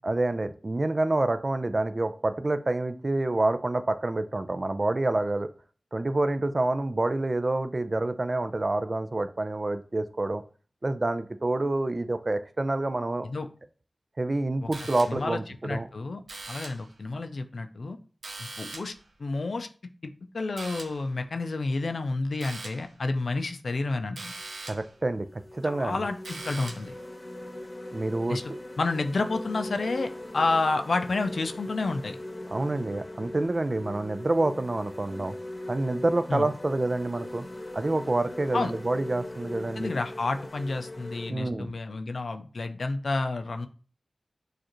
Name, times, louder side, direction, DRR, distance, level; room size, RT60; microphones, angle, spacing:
voice 1, 0.0-5.5 5.9-10.4 10.8-13.3 14.2-15.9 24.7-25.3 25.5-26.0 27.9-28.4 32.5-35.4 35.7-37.4 37.7-39.9 41.3-41.7, right 2 dB, 45° right, 11 dB, 0.4 m, -27 dB
sound 1, 14.7-15.4 16.3-16.9 18.2-19.1 20.6-21.1 22.4-22.9 24.2-25.0 26.2-27.0, right 2 dB, 90° right, 0.6 m, -41 dB
voice 2, 15.1-16.2 16.5-18.0 18.4-18.9 19.2-19.7 20.0-24.3 25.6-26.9 28.3-28.4 28.8-32.2 36.3-36.5 38.5-38.7 39.8-43.7, left 3 dB, 80° left, 7 dB, 0.4 m, -30 dB
sound 2, 24.4-24.5 25.1-41.3, left 1 dB, 35° left, 0.9 m, -40 dB
6.4 x 2.5 x 3.0 m, 0.39 s
cardioid pair, 45°, 0 cm